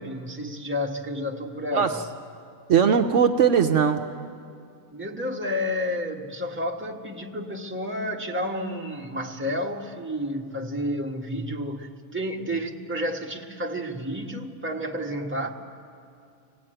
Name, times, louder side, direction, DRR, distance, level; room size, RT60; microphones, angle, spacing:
voice 1, 0.0-1.9 4.9-15.5, equal, 10° right, -1 dB, 1.4 m, -30 dB
voice 2, 2.7-4.0, right 7 dB, 65° right, 6 dB, 1.1 m, -19 dB
25.0 x 18.5 x 8.9 m, 2.4 s
omnidirectional pair, 1.4 m